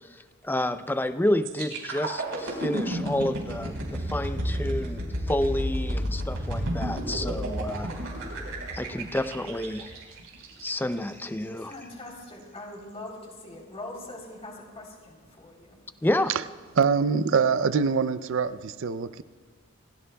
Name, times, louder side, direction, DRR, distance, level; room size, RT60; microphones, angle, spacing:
voice 1, 0.4-7.9 8.7-9.9 10.6-11.7 16.0-16.3, left 1 dB, 10° left, 10 dB, 0.5 m, -29 dB
sound 1, 1.4-11.3 11.7-11.9, equal, 80° right, 4.6 m, -32 dB
voice 2, 11.5-15.8, left 2 dB, 30° left, -1 dB, 3.5 m, -42 dB
voice 3, 16.7-19.2, right 5 dB, 65° right, 13 dB, 0.5 m, -24 dB
28.5 x 16.5 x 2.3 m, 1.5 s
head